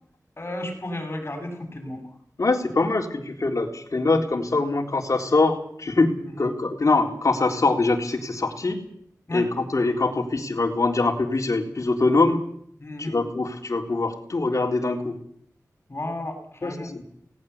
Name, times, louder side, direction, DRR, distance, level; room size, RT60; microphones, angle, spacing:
voice 1, 0.4-2.0 6.2-6.5 9.3-9.4 12.8-13.1 15.9-16.9, left 1 dB, 40° left, 4 dB, 7.4 m, -33 dB
voice 2, 2.4-8.8 9.3-12.4 13.0-15.2 16.6-17.0, left 3 dB, 60° left, 2 dB, 3.8 m, -23 dB
19.0 x 18.5 x 8.3 m, 0.67 s
wide cardioid pair, 85°, 6 cm